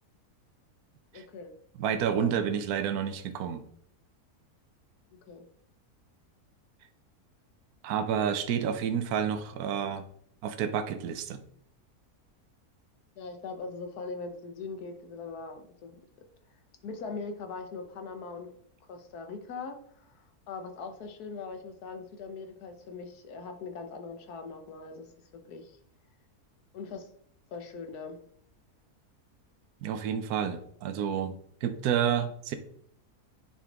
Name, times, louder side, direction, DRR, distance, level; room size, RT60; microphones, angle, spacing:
voice 1, 1.1-1.5 2.1-2.3 5.3-5.5 13.2-16.0 16.8-18.5 18.9-25.8 26.7-27.1 27.5-28.2, left 4 dB, 80° left, 6 dB, 1.5 m, -41 dB
voice 2, 1.8-3.6 7.8-10.0 10.4-11.4 29.8-32.5, right 8 dB, 75° right, 9 dB, 1.2 m, -30 dB
9.9 x 4.4 x 3.5 m, 0.65 s
omnidirectional pair, 1.6 m